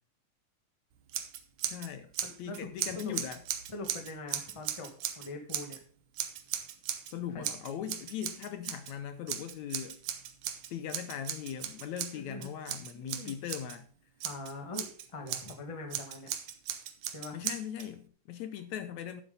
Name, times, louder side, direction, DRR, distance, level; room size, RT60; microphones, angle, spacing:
Scissors, 1.1-5.8 6.2-7.1 7.4-8.9 9.3-13.8 14.2-15.5 15.9-17.9, right 10 dB, 70° right, 2.0 m, -37 dB
voice 1, 1.7-2.1 2.4-3.4 7.1-10.0 10.7-13.9 17.3-19.2, left 9 dB, 75° left, 1.8 m, -39 dB
voice 2, 2.2-2.7 2.9-3.1 3.7-5.8 7.3-7.4 12.1-12.5 12.9-13.3 14.2-16.3 17.1-17.4, left 2 dB, 20° left, 0.7 m, -43 dB
11.5 x 7.7 x 3.9 m
omnidirectional pair, 3.8 m